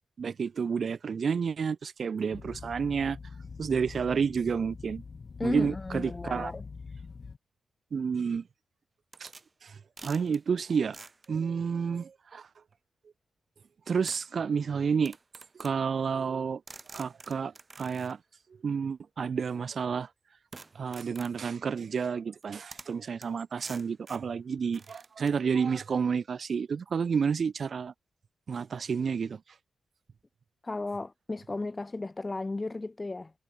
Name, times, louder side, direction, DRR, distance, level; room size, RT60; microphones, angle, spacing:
voice 1, 0.2-3.2 3.6-5.0 5.4-6.5 7.9-8.4 9.2-9.3 9.6-11.0 11.3-12.5 13.9-15.2 15.6-16.6 16.9-18.2 18.6-20.1 20.7-27.9 28.5-29.4, right 6 dB, 55° right, 1.3 m, -30 dB
sound 1, 2.3-7.4, left 5 dB, 45° left, 1.2 m, -44 dB
voice 2, 5.4-6.6 30.6-33.3, left 2 dB, 25° left, 3.2 m, -34 dB
sound 2, 9.1-9.5 10.0-10.4 10.9-11.3 12.7-12.8 14.1-14.3 15.0-15.8 16.7-18.1 20.5-21.4 22.4-22.5 22.7-23.0 23.2-23.3 23.6-24.3 24.7-25.4, right 3 dB, 30° right, 3.9 m, -49 dB
cardioid pair, 90°, 0 cm